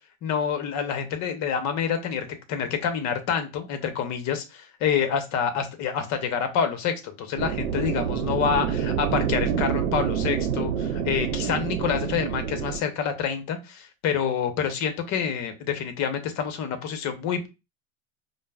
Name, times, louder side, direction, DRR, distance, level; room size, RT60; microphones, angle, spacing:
voice 1, 0.2-17.5, left 7 dB, 45° left, 8 dB, 0.9 m, -27 dB
sound 1, 7.4-12.8, right 8 dB, 85° right, 0.6 m, -27 dB
5.1 x 2.0 x 2.3 m, 0.26 s
hypercardioid pair, 90°, 39 cm